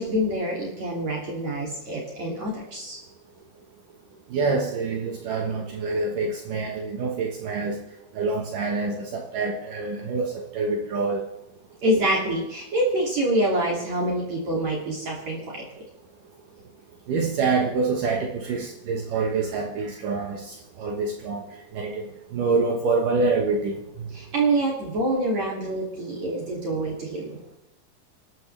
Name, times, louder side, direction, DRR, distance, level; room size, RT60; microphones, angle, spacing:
voice 1, 0.0-3.0 11.8-15.7 24.1-27.4, right 1 dB, 50° right, -3 dB, 3.9 m, -26 dB
voice 2, 4.3-7.8 8.2-11.2 17.1-21.4 21.7-22.0 22.3-23.8, right 4 dB, 65° right, 1 dB, 2.8 m, -26 dB
29.0 x 12.5 x 3.4 m, 0.88 s
omnidirectional pair, 4.4 m